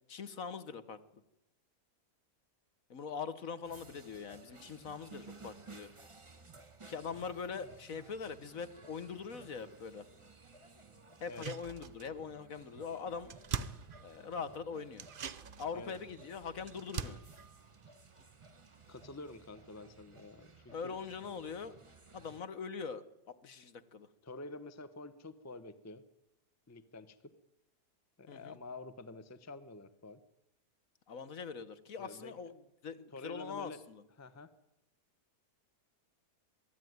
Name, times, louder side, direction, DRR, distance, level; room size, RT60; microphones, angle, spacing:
voice 1, 0.1-1.0 2.9-5.9 6.9-10.0 11.2-13.3 14.0-15.1 15.6-17.2 20.7-21.7 22.1-23.0 23.4-24.1 28.3-28.6 31.1-32.6 32.8-34.0, left 5 dB, 55° left, 13 dB, 1.5 m, -42 dB
sound 1, 3.6-22.4, right 4 dB, 20° right, 1.3 m, -57 dB
sound 2, 11.2-12.3 12.6-12.7 13.0-14.5 14.9-18.7 19.0-19.1, right 7 dB, 45° right, 0.8 m, -44 dB
voice 2, 18.9-21.0 24.2-26.0 26.7-27.3 28.2-30.2 32.0-32.5 33.1-33.8 34.2-34.5, left 2 dB, 15° left, 13 dB, 0.8 m, -48 dB
23.0 x 14.0 x 9.5 m, 0.91 s
omnidirectional pair, 1.8 m